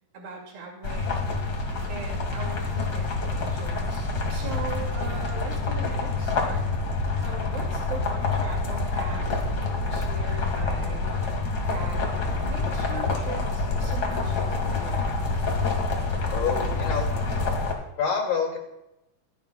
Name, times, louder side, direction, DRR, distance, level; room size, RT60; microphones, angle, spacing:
voice 1, 0.1-1.6 1.9-6.6 7.2-9.3 9.5-11.1 11.6-15.2, right 4 dB, 85° right, -2 dB, 4.1 m, -40 dB
sound 1, 0.8-17.7, left 3 dB, 40° left, 1.6 m, -27 dB
voice 2, 16.3-17.1 18.0-18.6, left 6 dB, 75° left, -1 dB, 4.0 m, -27 dB
24.5 x 8.5 x 2.3 m, 0.89 s
omnidirectional pair, 4.0 m